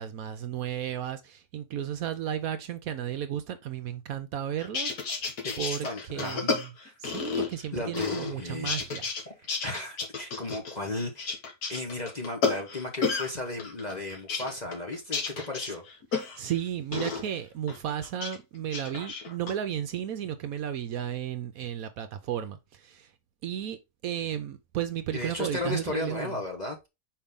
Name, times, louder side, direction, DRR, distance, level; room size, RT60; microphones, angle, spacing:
voice 1, 0.0-5.3 5.6-5.9 6.1-6.7 7.0-9.1 16.4-23.1 23.4-26.4, right 10 dB, 70° right, 1.0 m, -34 dB
sound 1, 4.6-7.7 7.9-9.2 9.5-13.3 13.6-16.6 16.9-17.2 17.7-18.4 18.7-19.5, left 5 dB, 65° left, 1.8 m, -32 dB
voice 2, 5.4-6.5 6.8-6.9 7.7-8.7 9.3-11.4 11.7-15.8 25.1-26.8, left 2 dB, 30° left, 0.9 m, -35 dB
5.6 x 4.7 x 3.6 m
omnidirectional pair, 1.7 m